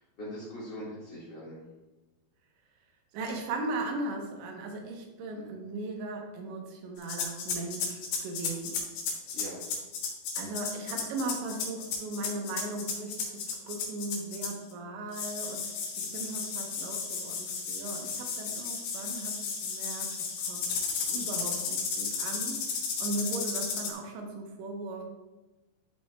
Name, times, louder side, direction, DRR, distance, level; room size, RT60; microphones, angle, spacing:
voice 1, 0.0-1.6 5.3-5.5 9.3-9.6, equal, 50° left, -8 dB, 1.3 m, -42 dB
voice 2, 3.1-8.8 10.4-20.7 21.1-25.0, right 2 dB, 85° right, 2 dB, 3.3 m, -38 dB
sound 1, 7.0-14.7 15.1-23.9, left 5 dB, 80° left, 3.6 m, -34 dB
11.5 x 5.5 x 2.3 m, 1.1 s
omnidirectional pair, 5.1 m